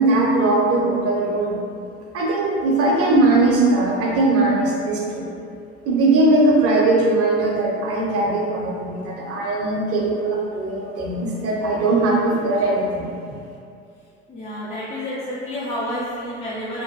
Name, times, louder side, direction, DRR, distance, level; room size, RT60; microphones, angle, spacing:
voice 1, 0.0-1.6 2.1-5.3 5.8-13.1, right 2 dB, 40° right, -3 dB, 0.7 m, -19 dB
voice 2, 14.3-16.8, left 1 dB, 20° left, -8 dB, 0.4 m, -29 dB
2.9 x 2.1 x 2.9 m, 2.4 s
hypercardioid pair, 75°, 37 cm